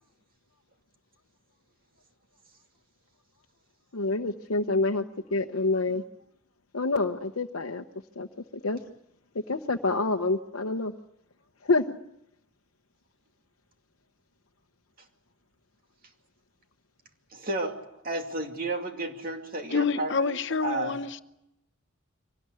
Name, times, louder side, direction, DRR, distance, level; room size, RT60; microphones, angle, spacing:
voice 1, 3.9-5.0 5.3-6.0 6.7-7.8 8.2-8.3 8.6-8.8 9.5-10.9 11.6-11.8, left 3 dB, 90° left, 0.9 m, -27 dB
voice 2, 17.3-17.8 18.0-21.0, right 2 dB, 45° right, 2.5 m, -32 dB
voice 3, 19.7-21.2, left 5 dB, 60° left, 0.9 m, -27 dB
24.0 x 18.5 x 9.7 m
head